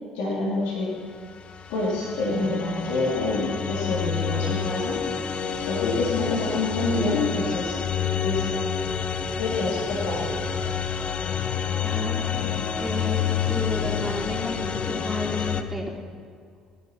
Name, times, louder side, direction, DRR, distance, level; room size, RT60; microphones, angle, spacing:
voice 1, 0.1-0.9 1.7-5.0 5.6-7.8 8.2-8.5 9.4-10.3, left 2 dB, 70° left, -5 dB, 3.2 m, -27 dB
sound 1, 1.3-15.6, left 7 dB, 45° left, 0.9 m, -28 dB
voice 2, 11.8-15.9, left 2 dB, 5° right, -3 dB, 3.6 m, -32 dB
15.5 x 11.0 x 6.0 m, 2.1 s
hypercardioid pair, 55°, 3 cm